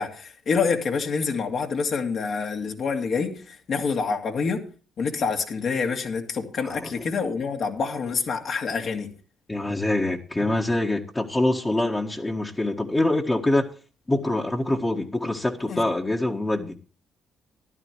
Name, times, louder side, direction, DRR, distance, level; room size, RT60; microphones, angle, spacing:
voice 1, 0.0-4.6 5.0-9.1 15.7-15.8, left 5 dB, 60° left, 3 dB, 2.5 m, -27 dB
voice 2, 9.5-13.7 14.1-16.7, left 2 dB, 20° left, -1 dB, 1.6 m, -25 dB
15.0 x 12.0 x 3.1 m, 0.37 s
hypercardioid pair, 50°, 0 cm